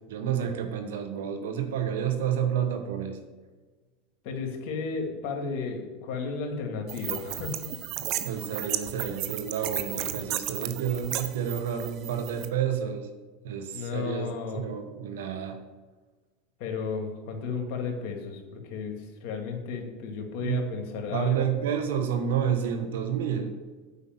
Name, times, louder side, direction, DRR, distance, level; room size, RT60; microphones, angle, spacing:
voice 1, 0.1-3.2 8.2-13.1 13.4-14.3 14.5-15.6 20.4-20.7 20.9-23.5, right 8 dB, 80° right, 7 dB, 1.3 m, -30 dB
voice 2, 4.2-7.6 13.7-14.7 16.6-21.5, left 5 dB, 60° left, 4 dB, 2.2 m, -33 dB
sound 1, 6.9-12.5, right 13 dB, 55° right, 0.8 m, -34 dB
8.4 x 5.3 x 7.7 m, 1.3 s
hypercardioid pair, 105°, 0 cm